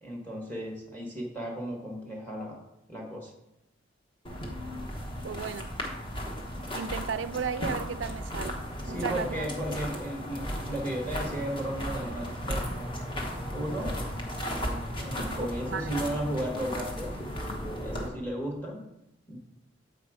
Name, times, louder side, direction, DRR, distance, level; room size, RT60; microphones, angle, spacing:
voice 1, 0.0-2.6 2.9-3.3 8.8-12.7 13.5-14.0 15.0-17.2 17.8-18.8 19.3-19.4, right 1 dB, 10° left, 1.4 m, -34 dB
sound 1, 4.2-18.1, equal, 25° left, 1.2 m, -35 dB
voice 2, 5.2-5.7 6.7-8.6 8.9-9.5 15.3-15.9, right 6 dB, 70° right, 0.4 m, -35 dB
7.8 x 5.0 x 4.9 m
head